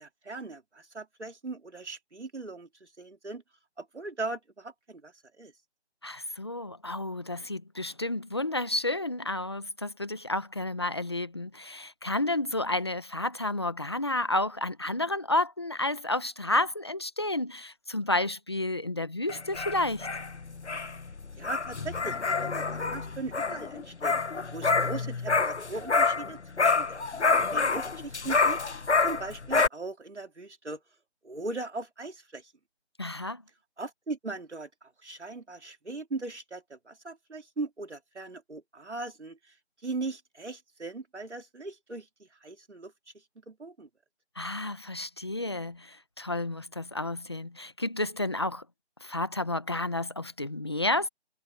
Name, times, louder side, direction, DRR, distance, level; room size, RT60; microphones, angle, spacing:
voice 1, 0.0-3.4 3.8-5.5 21.4-24.2 24.5-28.6 29.0-30.8 31.2-32.5 33.8-39.5 39.8-42.9 43.5-43.9, right 3 dB, 85° right, 4.2 m, -39 dB
voice 2, 6.0-20.1 33.0-33.4 44.4-48.6 49.0-51.1, left 2 dB, 25° left, 1.2 m, -31 dB
sound 1, 19.3-26.3 26.6-29.7, left 4 dB, 80° left, 1.5 m, -27 dB
figure-of-eight pair, 175°, 34 cm